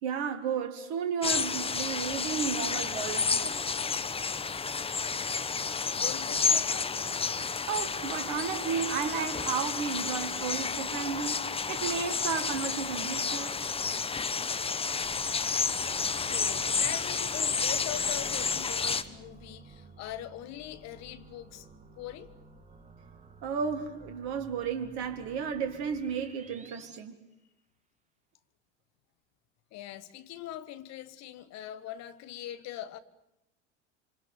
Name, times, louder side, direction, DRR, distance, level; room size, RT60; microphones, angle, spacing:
voice 1, 0.0-3.6 7.7-13.6 23.4-27.2, right 6 dB, 55° right, 2.2 m, -33 dB
sound 1, 1.2-19.0, left 5 dB, 15° left, 1.2 m, -31 dB
voice 2, 5.9-7.1 16.2-22.3 29.7-33.0, left 12 dB, 45° left, 1.7 m, -42 dB
sound 2, 15.0-27.0, right 4 dB, 20° right, 2.6 m, -52 dB
27.0 x 26.5 x 7.4 m
figure-of-eight pair, 75°, 36 cm